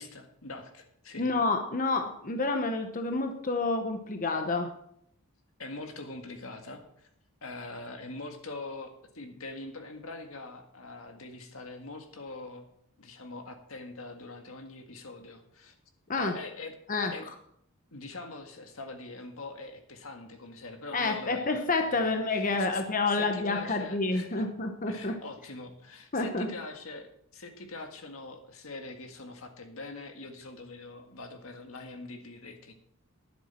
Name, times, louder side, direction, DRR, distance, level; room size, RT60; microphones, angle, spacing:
voice 1, 0.0-1.3 5.6-7.1 7.4-12.6 13.0-15.7 16.1-16.7 17.1-17.3 17.9-21.5 21.8-24.5 24.9-32.7, left 2 dB, 80° left, 5 dB, 1.8 m, -43 dB
voice 2, 1.2-4.7 16.1-16.3 16.9-17.1 20.9-25.2 26.1-26.5, left 3 dB, 40° left, 5 dB, 1.0 m, -29 dB
12.0 x 10.5 x 4.4 m, 0.70 s
head